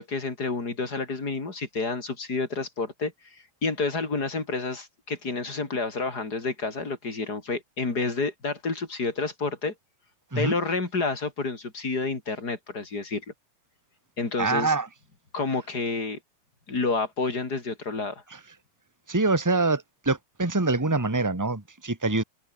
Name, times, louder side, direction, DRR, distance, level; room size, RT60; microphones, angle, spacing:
voice 1, 0.0-9.7 10.4-13.2 14.2-14.8 15.3-16.2 16.7-18.2, left 3 dB, 25° left, 4.1 m, -29 dB
voice 2, 14.4-14.9 19.1-22.2, right 3 dB, 10° right, 1.0 m, -25 dB
omnidirectional pair, 4.3 m